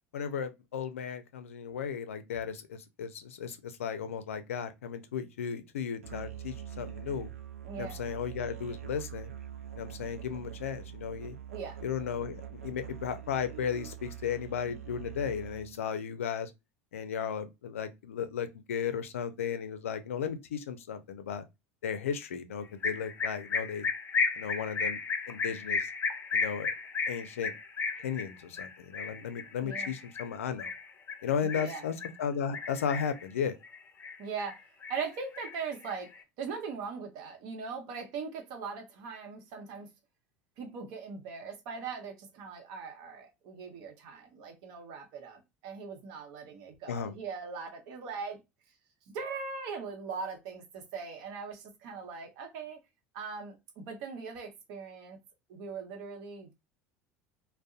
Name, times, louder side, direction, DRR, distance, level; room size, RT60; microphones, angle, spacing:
voice 1, 0.1-7.3 7.8-9.3 9.8-11.4 11.8-16.5 16.9-21.4 21.8-23.9 24.4-25.0 25.3-25.9 26.3-26.7 27.1-27.5 28.0-30.7 31.2-33.6 46.9-47.1, left 7 dB, 85° left, 0.4 m, -35 dB
Musical instrument, 6.0-15.8, right 11 dB, 90° right, 0.4 m, -44 dB
voice 2, 7.6-8.0 11.5-11.8 29.6-29.9 31.4-31.8 34.2-34.6 34.9-36.1 36.4-39.9 40.6-48.4 49.1-52.8 53.1-55.2 55.5-56.5, right 5 dB, 65° right, 0.8 m, -40 dB
sound 1, 22.8-32.2 32.5-33.3 33.6-34.6 34.8-36.2, left 5 dB, 30° left, 0.5 m, -34 dB
2.6 x 2.1 x 2.4 m
hypercardioid pair, 75°, 7 cm